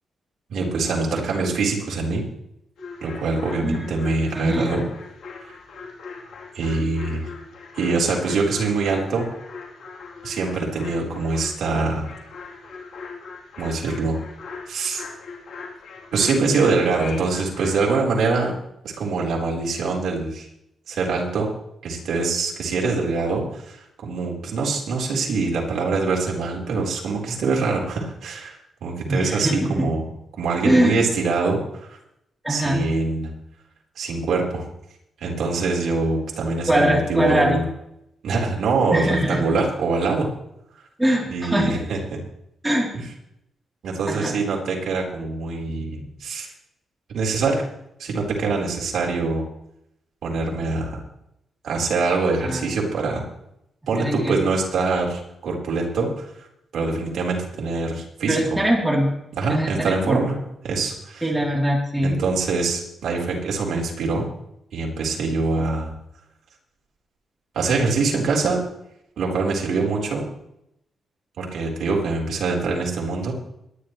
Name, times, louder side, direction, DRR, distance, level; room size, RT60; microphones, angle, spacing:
voice 1, 0.5-2.2 3.0-4.8 6.5-7.3 7.8-9.3 10.2-12.1 13.6-14.2 14.7-15.0 16.1-18.6 19.0-20.5 20.9-21.5 21.8-30.0 30.4-31.9 32.5-33.3 34.0-34.6 35.2-37.6 38.2-40.3 41.3-42.0 42.9-43.0 43.8-46.5 47.1-47.6 48.0-49.4 50.2-51.0 51.6-53.2 53.9-56.2 56.7-58.4 59.4-60.3 60.6-61.3 62.0-64.3 64.7-65.9 67.5-68.6 69.2-70.2 71.4-73.3, right 3 dB, 70° right, -2 dB, 4.3 m, -24 dB
sound 1, 2.8-17.8, left 4 dB, 85° left, 3.6 m, -39 dB
voice 2, 4.3-4.7 29.1-29.9 30.6-31.0 32.4-32.8 36.7-37.6 38.9-39.4 41.0-41.8 42.6-42.9 44.1-44.4 52.4-52.7 54.0-54.4 58.3-59.1 59.5-60.3 61.2-62.2, right 1 dB, 5° right, -2 dB, 3.6 m, -22 dB
22.0 x 11.0 x 3.3 m, 0.79 s
wide cardioid pair, 145°, 0 cm